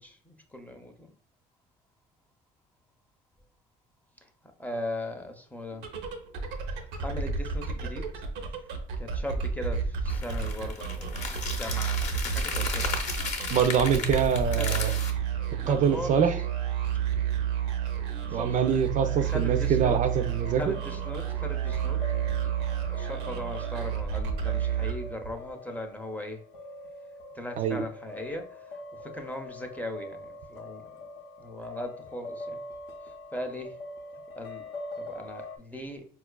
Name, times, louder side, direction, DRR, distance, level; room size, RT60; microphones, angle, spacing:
voice 1, 0.0-1.1 4.2-4.3 4.6-5.8 6.7-8.2 9.0-13.1 14.5-15.0 15.4-16.3 18.3-18.6 19.1-20.0 20.5-22.1 22.4-26.4 27.3-30.9 31.4-32.6 33.0-33.8 34.4-34.6 35.0-36.0, left 1 dB, 10° left, 4 dB, 0.5 m, -39 dB
sound 1, 5.7-25.5, right 7 dB, 90° right, 0.6 m, -31 dB
sound 2, 10.1-15.1, left 4 dB, 45° left, 0.7 m, -35 dB
voice 2, 13.5-14.9 15.7-16.4 18.3-20.8 27.6-27.8, right 7 dB, 50° right, 8 dB, 0.4 m, -25 dB
sound 3, 20.0-35.6, left 2 dB, 80° left, 0.6 m, -43 dB
4.2 x 2.3 x 2.2 m, 0.43 s
cardioid pair, 110°, 17 cm